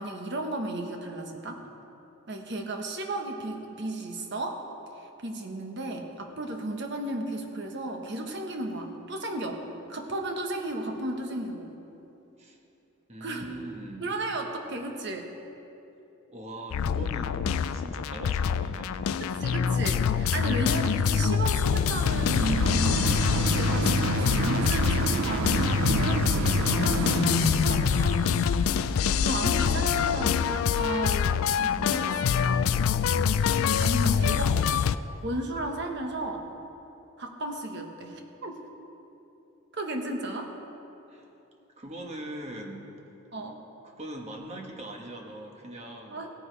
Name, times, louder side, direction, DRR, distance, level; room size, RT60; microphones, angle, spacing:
voice 1, 0.0-1.6 2.3-4.6 5.0-9.6 9.9-11.7 13.2-13.5 14.0-15.3 19.2-28.3 29.2-32.9 33.8-34.5 35.2-36.4 37.2-38.6 39.7-40.5 43.3-43.6 46.1-46.3, right 1 dB, 55° right, 3 dB, 1.2 m, -34 dB
voice 2, 13.1-14.1 16.3-19.1 34.1-34.6 41.1-41.3 41.8-42.9 43.8-46.3, right 1 dB, 30° right, 1 dB, 1.2 m, -41 dB
sound 1, 16.7-35.0, left 7 dB, 80° left, 0.3 m, -25 dB
sound 2, 20.8-32.1 32.7-32.8, right 4 dB, 75° right, 0.4 m, -31 dB
17.5 x 9.7 x 3.3 m, 2.9 s
head